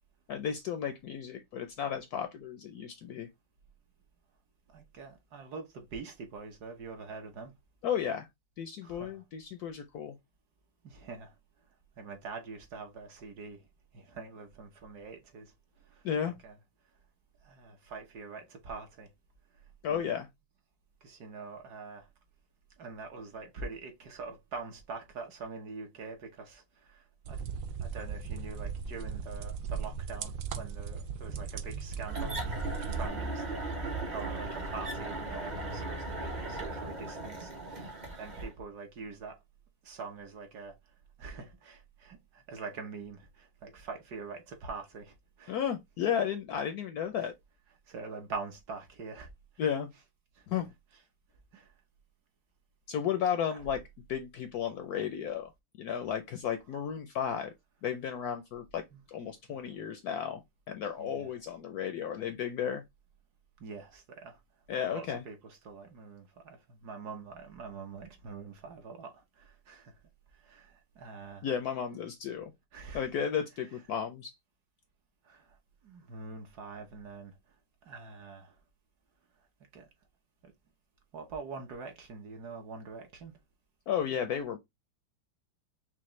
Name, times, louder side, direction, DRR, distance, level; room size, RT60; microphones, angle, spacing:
voice 1, 0.3-3.3 7.8-8.3 8.6-10.2 16.0-16.3 19.8-20.3 45.5-47.3 49.6-49.9 50.5-50.7 52.9-53.8 54.1-55.5 55.8-57.5 57.8-62.8 64.7-65.2 71.4-72.5 72.9-74.3 83.9-84.6, left 8 dB, 70° left, 0.9 m, -33 dB
voice 2, 4.7-7.5 8.8-9.2 10.8-11.3 12.0-13.7 13.9-15.5 15.8-16.6 17.4-19.1 19.9-20.0 21.0-22.1 22.8-27.4 27.8-39.4 39.8-40.8 41.2-45.6 47.2-47.3 47.9-49.3 50.3-50.5 51.5-51.7 53.5-53.6 58.9-59.0 59.5-59.7 61.0-61.3 63.6-64.4 64.9-70.0 70.4-71.5 72.7-73.0 75.2-75.6 75.8-77.3 77.8-78.6 79.7-79.9 80.4-80.5 81.1-83.3, right 4 dB, 60° right, 1.5 m, -44 dB
sound 1, 27.2-33.1, right 6 dB, 85° right, 0.7 m, -37 dB
sound 2, 32.1-38.5, right 2 dB, 40° right, 0.6 m, -37 dB
5.7 x 2.5 x 3.1 m
omnidirectional pair, 2.0 m